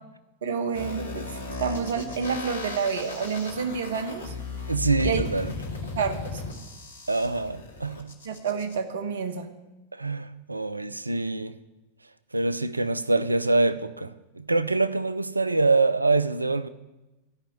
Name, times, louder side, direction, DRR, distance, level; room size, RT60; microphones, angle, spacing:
voice 1, 0.4-1.3 1.6-4.3 5.0-5.2 5.9-6.4 8.2-9.5, right 6 dB, 60° right, 1.2 m, -29 dB
sound 1, 0.7-8.7, left 3 dB, 70° left, 2.0 m, -36 dB
voice 2, 4.7-5.5 7.1-8.1 9.9-11.5 12.3-16.7, right 3 dB, 85° right, 0.5 m, -25 dB
13.5 x 5.7 x 9.0 m
figure-of-eight pair, 90°, 0 cm